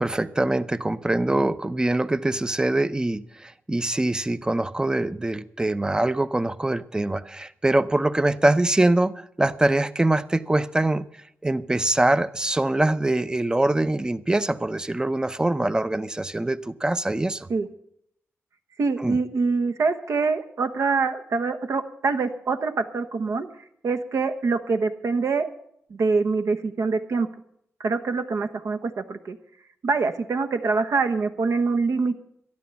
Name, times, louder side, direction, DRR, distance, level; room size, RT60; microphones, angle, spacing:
voice 1, 0.0-11.1 11.4-17.5 19.0-19.2, right 2 dB, 15° right, 0.6 m, -23 dB
voice 2, 18.8-23.5 23.8-25.5 25.9-27.3 27.8-29.4 29.8-32.2, right 4 dB, 70° right, 1.1 m, -24 dB
13.0 x 11.0 x 7.0 m
cardioid pair, 80°, 5 cm